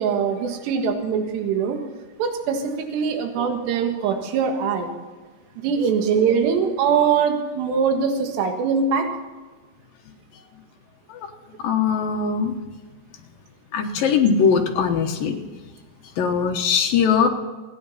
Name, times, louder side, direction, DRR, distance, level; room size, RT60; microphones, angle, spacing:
voice 1, 0.0-1.8 2.2-2.6 2.9-4.9 5.6-9.1, right 6 dB, 75° right, 4 dB, 3.7 m, -22 dB
voice 2, 11.6-12.5 13.7-15.4 16.2-17.3, left 6 dB, 65° left, 3 dB, 2.6 m, -20 dB
29.5 x 10.0 x 4.1 m, 1.3 s
omnidirectional pair, 5.1 m